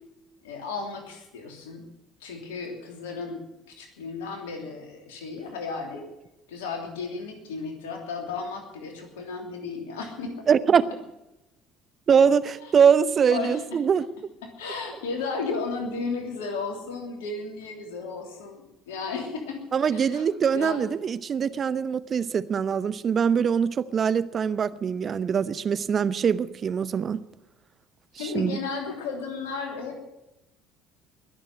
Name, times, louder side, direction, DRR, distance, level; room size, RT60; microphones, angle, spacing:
voice 1, 0.4-1.9 2.2-6.1 6.5-10.5 12.6-12.7 13.3-13.6 14.6-19.7 19.9-20.3 20.5-20.8 28.2-30.1, left 4 dB, 75° left, 3.0 m, -34 dB
voice 2, 10.5-10.9 12.1-14.1 19.7-27.2 28.2-28.6, right 7 dB, 40° right, 0.8 m, -23 dB
21.0 x 7.3 x 9.3 m
figure-of-eight pair, 55°, 0 cm